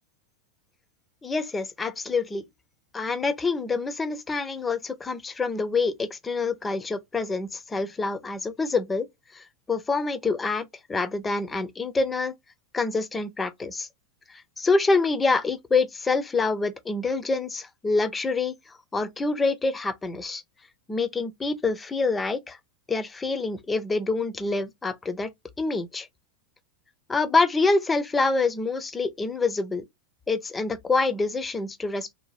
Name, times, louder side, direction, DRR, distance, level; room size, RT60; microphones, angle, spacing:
voice 1, 1.2-2.5 2.9-9.1 9.3-12.3 12.7-13.9 14.6-18.5 18.9-20.4 20.9-22.6 22.9-25.3 25.6-26.1 27.1-29.8 30.3-32.1, left 3 dB, 15° left, 0.5 m, -26 dB
2.7 x 2.2 x 3.1 m
hypercardioid pair, 95°, 0 cm